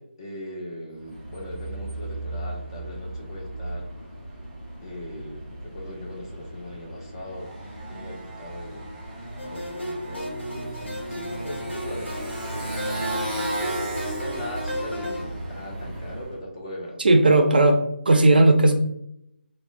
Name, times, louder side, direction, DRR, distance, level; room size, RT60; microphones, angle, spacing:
voice 1, 0.0-3.9 4.8-7.5 7.9-8.9 9.4-13.4 13.8-17.1, left 1 dB, 25° left, -1 dB, 0.6 m, -39 dB
Motorcycle, 1.0-16.4, right 1 dB, 10° right, 1.0 m, -35 dB
sound 1, 9.4-15.2, left 1 dB, 80° left, 1.0 m, -34 dB
voice 2, 17.0-18.7, right 2 dB, 55° right, 5 dB, 0.4 m, -16 dB
3.5 x 2.1 x 2.4 m, 0.75 s
figure-of-eight pair, 155°, 6 cm